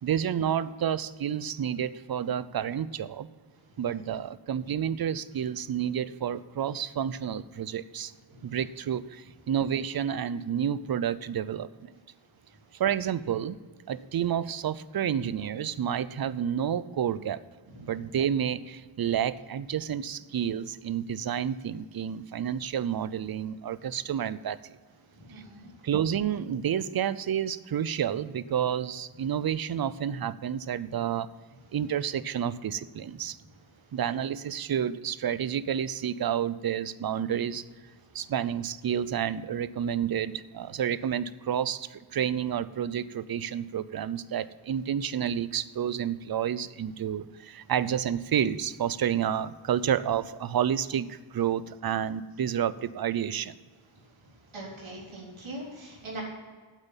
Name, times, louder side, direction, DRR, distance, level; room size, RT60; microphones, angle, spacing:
voice 1, 0.0-3.3 3.8-8.1 8.4-11.9 12.7-13.6 13.9-17.4 17.8-24.7 25.3-25.4 25.8-31.3 31.7-33.4 33.9-37.7 38.1-53.5, right 9 dB, 50° right, 16 dB, 0.5 m, -30 dB
voice 2, 25.2-25.9 54.5-56.2, right 1 dB, 85° right, -4 dB, 4.1 m, -42 dB
9.0 x 8.0 x 7.2 m, 1.5 s
wide cardioid pair, 150°, 46 cm